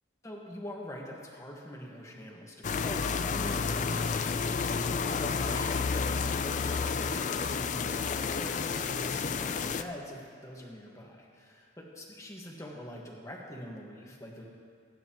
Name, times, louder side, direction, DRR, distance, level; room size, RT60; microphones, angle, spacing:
voice 1, 0.2-14.4, left 1 dB, 15° left, -2 dB, 1.5 m, -44 dB
sound 1, 2.6-9.8, left 5 dB, 40° left, 0.4 m, -30 dB
25.5 x 9.3 x 3.0 m, 2.2 s
head